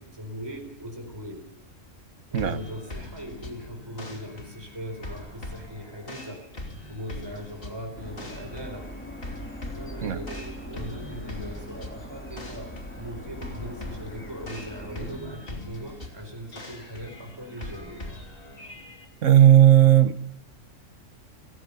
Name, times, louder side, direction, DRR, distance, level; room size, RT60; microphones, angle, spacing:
voice 1, 0.0-1.4 2.3-6.4 6.9-8.9 9.7-12.7 13.0-18.0, equal, 20° right, 4 dB, 4.3 m, -39 dB
sound 1, 2.3-19.0, left 2 dB, 45° left, 3.1 m, -42 dB
sound 2, 8.0-15.2, equal, 10° left, 2.8 m, -41 dB
voice 2, 19.2-20.2, right 11 dB, 75° right, 14 dB, 1.4 m, -16 dB
29.0 x 15.5 x 6.8 m, 0.73 s
omnidirectional pair, 1.3 m